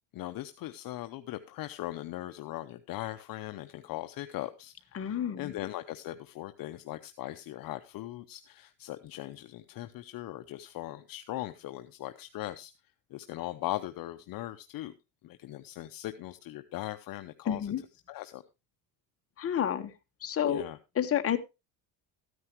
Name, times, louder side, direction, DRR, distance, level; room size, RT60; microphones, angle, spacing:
voice 1, 0.1-12.7 13.1-14.9 15.2-17.7 18.1-18.4 20.5-20.8, left 15 dB, 55° left, 9 dB, 0.7 m, -39 dB
voice 2, 4.9-5.5 17.5-17.8 19.4-19.9 20.2-20.6 20.9-21.4, left 9 dB, 35° left, 7 dB, 1.1 m, -29 dB
13.5 x 9.5 x 3.0 m, 0.25 s
cardioid pair, 125°, 42 cm